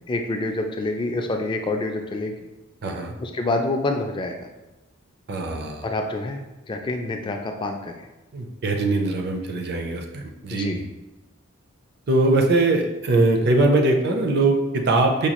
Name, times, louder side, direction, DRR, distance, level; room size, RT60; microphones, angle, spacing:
voice 1, 0.1-2.4 3.2-4.5 5.8-8.1 10.5-10.8, left 2 dB, 20° left, 4 dB, 0.3 m, -27 dB
voice 2, 2.8-3.1 5.3-5.8 8.3-10.8 12.1-15.3, right 2 dB, 50° right, 3 dB, 0.5 m, -21 dB
5.0 x 2.3 x 2.9 m, 1.1 s
head